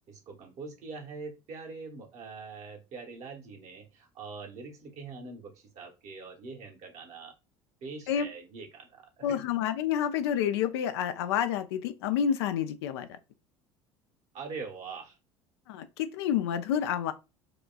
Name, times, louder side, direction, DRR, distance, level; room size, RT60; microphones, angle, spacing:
voice 1, 0.1-7.3 7.8-9.4 14.3-15.2, right 4 dB, 50° right, 1.2 m, -43 dB
voice 2, 9.2-13.1 15.7-17.1, left 9 dB, 65° left, 0.5 m, -29 dB
5.0 x 2.3 x 2.2 m
figure-of-eight pair, 65°, 15 cm